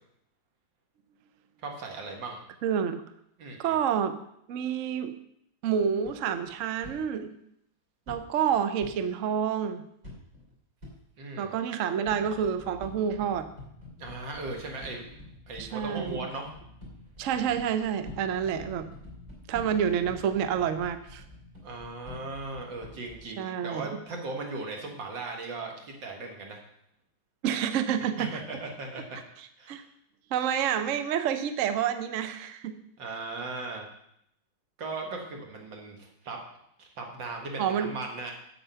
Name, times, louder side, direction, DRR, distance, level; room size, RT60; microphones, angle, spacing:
voice 1, 1.6-2.4 3.4-3.8 11.2-11.5 14.0-15.2 15.5-16.5 21.6-26.6 28.2-29.2 29.6-29.9 33.0-33.9 34.8-36.4 36.8-38.3, right 3 dB, 60° right, 2 dB, 2.3 m, -38 dB
voice 2, 2.6-3.0 3.6-4.2 4.5-5.1 5.6-7.3 8.1-9.8 11.4-13.5 15.6-16.3 17.2-18.9 19.5-21.2 23.4-24.0 27.4-28.4 29.7-29.8 30.3-32.7 37.6-37.9, right 8 dB, 80° right, 10 dB, 0.7 m, -28 dB
sound 1, 6.0-6.9 8.1-8.9 10.0-10.5 10.8-10.9 12.1-23.2, left 2 dB, 40° right, 3.6 m, -47 dB
8.2 x 7.7 x 5.7 m, 0.74 s
omnidirectional pair, 2.3 m